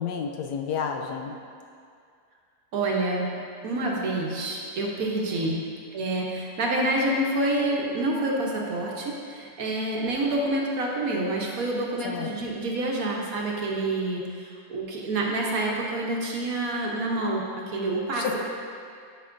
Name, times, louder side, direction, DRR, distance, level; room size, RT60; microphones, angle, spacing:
voice 1, 0.0-1.4 5.4-5.6 12.0-12.3 18.2-18.4, left 7 dB, 75° left, 3 dB, 1.1 m, -30 dB
voice 2, 2.7-3.3 3.6-5.6 5.9-18.4, right 2 dB, 60° right, -2 dB, 1.2 m, -27 dB
11.5 x 5.3 x 2.5 m, 2.3 s
omnidirectional pair, 1.8 m